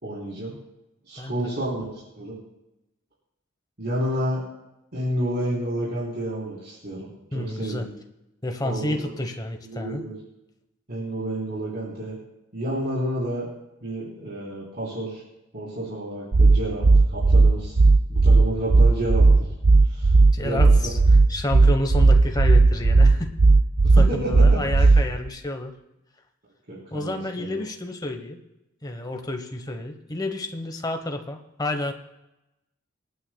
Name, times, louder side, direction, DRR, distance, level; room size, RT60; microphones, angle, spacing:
voice 1, 0.0-0.6 1.1-2.4 3.8-4.4 4.9-7.1 7.3-7.8 8.6-9.1 9.7-10.1 10.9-12.2 12.5-13.5 13.8-15.2 15.5-17.8 18.1-19.3 19.8-20.9 24.1-24.6 26.7-27.6, right 1 dB, 55° right, -6 dB, 3.7 m, -30 dB
voice 2, 1.2-1.5 7.3-7.9 8.4-10.0 20.3-21.0 21.3-23.3 23.8-25.8 26.9-28.4 28.8-31.9, left 1 dB, 20° left, 5 dB, 1.1 m, -30 dB
sound 1, 16.3-25.3, right 3 dB, 90° right, 0.6 m, -15 dB
26.5 x 9.3 x 2.3 m, 0.92 s
head